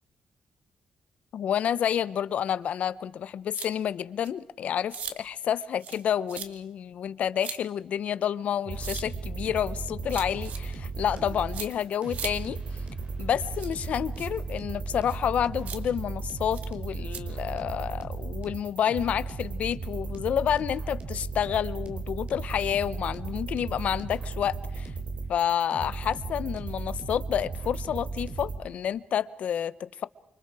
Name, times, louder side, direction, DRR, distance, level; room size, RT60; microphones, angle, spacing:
voice 1, 1.3-12.6 13.2-24.9 25.3-30.1, left 9 dB, 70° left, 0.9 m, -29 dB
sound 1, 3.5-3.7 4.2-4.3 4.9-5.1 5.8-6.0 6.3-6.5 7.4-7.6 8.8-9.0 10.1-10.6 11.5-11.7 12.1-12.3 13.6-13.7 14.2-14.3 15.1-15.2 15.7-15.8 16.5-16.7 17.1-17.2, right 7 dB, 75° right, 2.2 m, -38 dB
sound 2, 8.6-28.6, right 3 dB, 55° right, 3.6 m, -35 dB
29.0 x 25.5 x 4.9 m
cardioid pair, 120°, 2 cm